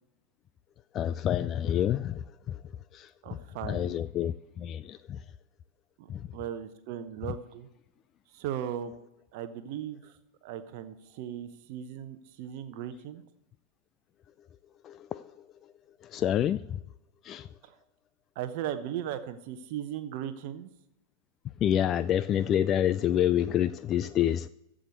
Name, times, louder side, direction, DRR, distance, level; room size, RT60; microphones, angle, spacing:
voice 1, 0.9-2.6 2.9-5.2 6.1-6.3 14.8-15.7 16.0-16.8 17.2-17.6 21.6-24.5, left 10 dB, 30° left, 0.3 m, -28 dB
voice 2, 3.2-4.0 6.0-6.1 6.3-7.7 8.3-8.9 9.3-10.1 10.4-13.2 17.6-17.7 18.4-20.7, right 10 dB, 45° right, 0.8 m, -37 dB
14.5 x 5.1 x 8.0 m
figure-of-eight pair, 90°, 0 cm